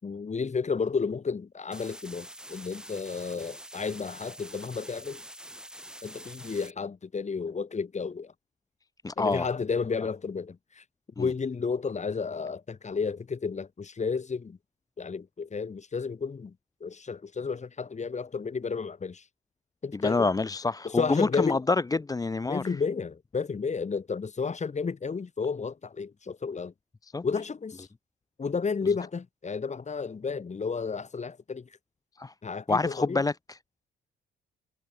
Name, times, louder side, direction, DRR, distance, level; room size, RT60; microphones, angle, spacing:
voice 1, 0.0-5.2 6.0-8.3 9.2-10.8 11.2-14.6 15.0-16.5 16.8-19.2 19.8-20.3 20.8-21.6 22.5-26.7 27.2-27.9 28.4-31.7 32.4-33.2, left 5 dB, 35° left, 6.7 m, -32 dB
sound 1, 1.7-6.7, right 1 dB, 5° right, 6.3 m, -46 dB
voice 2, 9.0-9.5 11.2-11.3 19.9-22.6 27.0-27.2 32.2-32.3 32.7-33.6, left 3 dB, 20° left, 0.7 m, -27 dB
cardioid pair, 90°, 20 cm